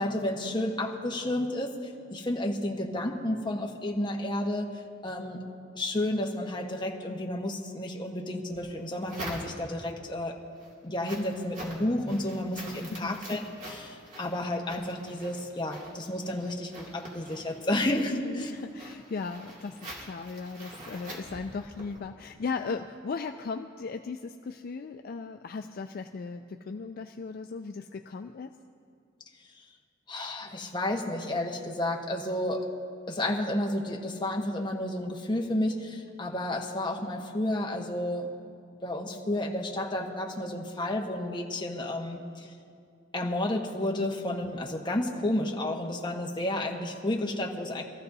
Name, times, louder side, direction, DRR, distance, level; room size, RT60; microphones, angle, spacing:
voice 1, 0.0-4.7 5.0-5.4 5.7-10.4 10.8-18.5 30.1-32.7 33.1-38.3 38.8-42.5 43.1-47.8, left 1 dB, 25° left, 0 dB, 1.2 m, -31 dB
sound 1, 8.5-9.9 10.4-22.0, right 1 dB, 45° right, 2.5 m, -45 dB
voice 2, 12.9-13.3 18.0-28.5 45.2-45.3, left 4 dB, 50° left, 6 dB, 0.4 m, -37 dB
24.0 x 14.5 x 2.7 m, 2.3 s
head